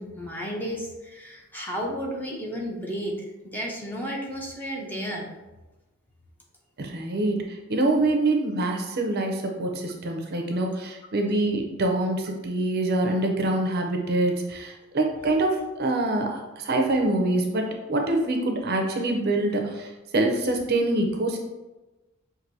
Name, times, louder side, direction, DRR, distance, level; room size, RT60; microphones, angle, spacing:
voice 1, 0.0-3.1 3.4-5.3, equal, 10° left, -2 dB, 0.6 m, -33 dB
voice 2, 6.8-7.4 7.7-21.4, right 2 dB, 50° right, 3 dB, 0.5 m, -25 dB
5.9 x 2.6 x 2.6 m, 1.1 s
head